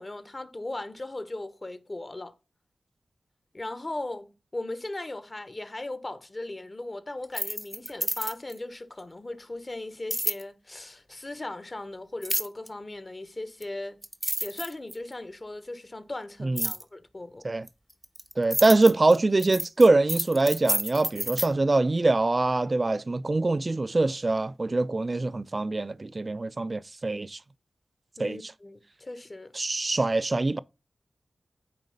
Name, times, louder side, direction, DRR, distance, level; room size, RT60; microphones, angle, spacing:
voice 1, 0.0-2.3 3.5-14.0 14.4-17.4 28.2-29.5, left 2 dB, 40° left, 1.0 m, -38 dB
sound 1, 7.2-8.6 10.1-10.4 12.2-12.7 13.6-13.7 14.0-15.1 16.6-16.8 17.7-21.5, equal, ahead, 0.7 m, -30 dB
voice 2, 16.4-16.7 17.4-17.7 18.4-27.4 28.2-28.4 29.6-30.6, right 2 dB, 40° right, 0.4 m, -24 dB
9.1 x 3.1 x 5.2 m
cardioid pair, 50°, 0 cm